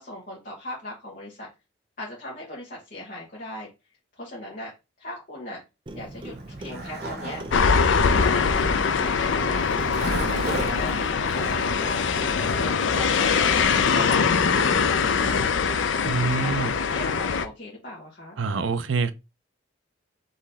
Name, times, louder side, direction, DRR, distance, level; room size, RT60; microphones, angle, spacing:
voice 1, 0.0-1.5 2.0-3.7 4.1-4.7 5.0-5.6 5.9-8.6 9.0-13.6 13.9-15.9 16.2-18.4, left 1 dB, 45° left, 1.5 m, -38 dB
Clock, 5.9-14.9, right 2 dB, 25° right, 0.5 m, -39 dB
Skateboard, 6.2-13.7, right 2 dB, 55° right, 1.1 m, -37 dB
sound 1, 7.5-17.4, left 5 dB, 70° left, 0.5 m, -22 dB
voice 2, 16.1-16.7 18.4-19.1, right 4 dB, 75° right, 0.5 m, -25 dB
3.9 x 3.1 x 4.1 m
head